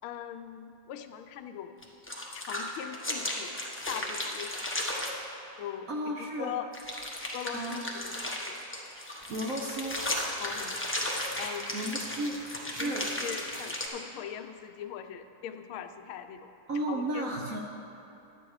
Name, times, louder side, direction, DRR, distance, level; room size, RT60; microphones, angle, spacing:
voice 1, 0.0-1.8 2.3-4.9 5.6-5.9 6.4-6.7 7.3-8.6 10.4-10.8 11.4-11.9 12.8-16.5 16.9-17.6, left 9 dB, 90° left, 8 dB, 1.5 m, -41 dB
sound 1, 1.8-5.1 6.7-13.9, left 1 dB, 15° left, 0.5 m, -35 dB
voice 2, 5.9-6.6 7.5-7.8 9.3-10.0 11.7-12.4 12.7-13.1 16.7-17.6, right 1 dB, 60° right, 0 dB, 0.9 m, -33 dB
11.0 x 8.7 x 4.7 m, 2.9 s
omnidirectional pair, 2.2 m